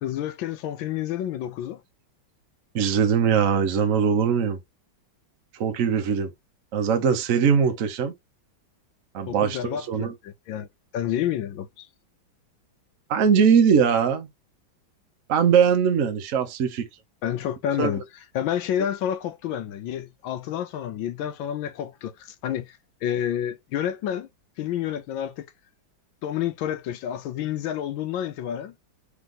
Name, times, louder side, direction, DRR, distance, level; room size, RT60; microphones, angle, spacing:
voice 1, 0.0-1.8 9.3-10.7 10.9-11.9 17.2-18.0 18.3-22.1 22.4-24.3 24.6-25.5 26.2-28.7, left 10 dB, 80° left, 1.3 m, -29 dB
voice 2, 2.7-4.6 5.5-6.3 6.7-8.1 9.1-10.1 13.1-14.3 15.3-16.9 17.8-17.9, right 7 dB, 55° right, 1.0 m, -21 dB
3.5 x 3.4 x 3.8 m
omnidirectional pair, 2.2 m